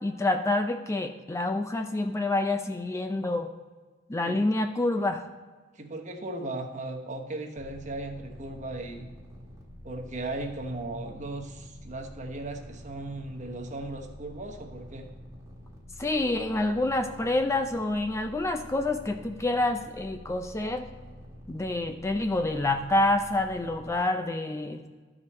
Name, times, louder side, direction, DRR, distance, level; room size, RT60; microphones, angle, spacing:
voice 1, 0.0-3.5 4.1-5.2 16.0-20.9 21.5-24.8, left 2 dB, 15° left, 6 dB, 0.4 m, -27 dB
voice 2, 5.7-9.1 9.8-15.1, right 2 dB, 40° right, 4 dB, 1.0 m, -37 dB
sound 1, 7.6-24.0, equal, 15° right, 1.3 m, -48 dB
12.5 x 5.0 x 4.2 m, 1.4 s
head